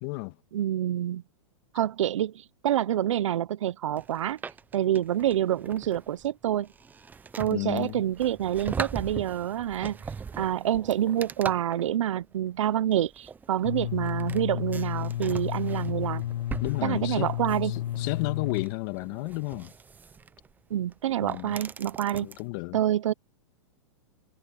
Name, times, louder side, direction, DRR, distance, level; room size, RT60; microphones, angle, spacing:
voice 1, 0.0-0.4 7.5-8.0 16.6-17.3 17.6-19.7 21.2-21.6 22.2-22.8, left 24 dB, 45° left, 1.8 m, -32 dB
voice 2, 0.5-1.2 1.7-4.4 4.7-6.7 7.4-10.0 10.4-16.2 16.8-17.7 20.7-22.3 22.7-23.1, right 11 dB, 75° right, 0.9 m, -27 dB
sound 1, 4.0-22.4, right 5 dB, 10° right, 0.7 m, -41 dB
sound 2, 13.6-18.6, left 12 dB, 70° left, 1.2 m, -31 dB
hypercardioid pair, 135°, 16 cm